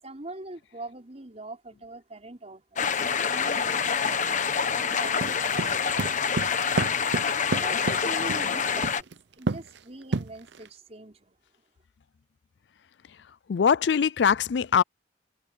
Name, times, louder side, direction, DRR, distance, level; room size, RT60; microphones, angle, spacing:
voice 1, 0.0-6.7 7.6-11.4, right 2 dB, 40° right, 4.9 m, -43 dB
sound 1, 2.8-9.0, left 6 dB, 45° left, 1.3 m, -26 dB
sound 2, 5.2-8.5 8.8-9.1 9.5-9.8 10.1-10.7, right 3 dB, 75° right, 0.7 m, -29 dB
voice 2, 13.5-14.8, left 7 dB, 70° left, 0.4 m, -22 dB
head